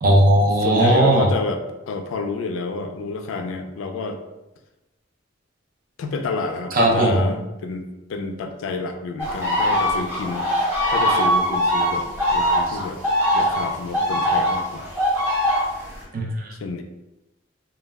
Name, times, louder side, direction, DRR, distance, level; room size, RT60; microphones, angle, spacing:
voice 1, 0.0-1.3 6.7-7.3 12.7-12.8 16.1-16.5, right 1 dB, 45° right, -1 dB, 0.5 m, -17 dB
voice 2, 0.6-4.2 6.0-13.1 13.3-14.9 16.6-16.8, left 3 dB, 80° left, 6 dB, 0.3 m, -29 dB
sound 1, 9.2-16.0, equal, 10° right, 0.7 m, -21 dB
2.3 x 2.1 x 3.3 m, 0.99 s
head